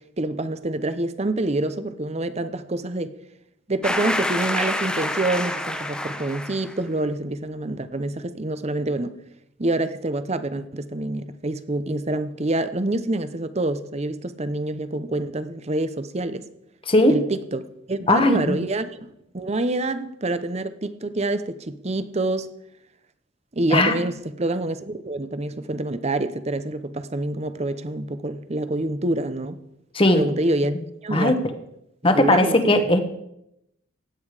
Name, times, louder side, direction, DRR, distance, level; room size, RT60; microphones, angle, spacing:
voice 1, 0.2-3.1 3.7-9.1 9.6-16.4 17.1-22.5 23.5-29.6 30.1-30.8 31.0-31.4 32.1-32.6, right 2 dB, 35° right, 12 dB, 0.7 m, -26 dB
sound 1, 3.8-6.8, left 1 dB, 5° left, 0.9 m, -27 dB
voice 2, 18.1-18.6 23.7-24.0 29.9-30.2 31.1-31.3 32.0-33.0, left 1 dB, 25° left, 7 dB, 1.1 m, -18 dB
16.0 x 10.0 x 4.9 m, 0.82 s
head